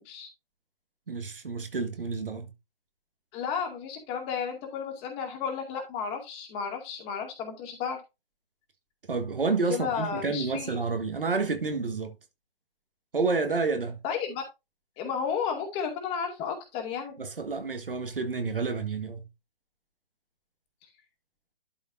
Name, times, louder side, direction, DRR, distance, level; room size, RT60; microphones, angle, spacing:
voice 1, 1.1-2.5 9.1-12.1 13.1-14.0 17.2-19.3, right 4 dB, 70° right, 1.7 m, -29 dB
voice 2, 3.3-8.0 9.7-10.8 14.0-14.4 15.0-17.1, left 7 dB, 20° left, 2.2 m, -33 dB
12.0 x 5.3 x 2.6 m
figure-of-eight pair, 135°, 29 cm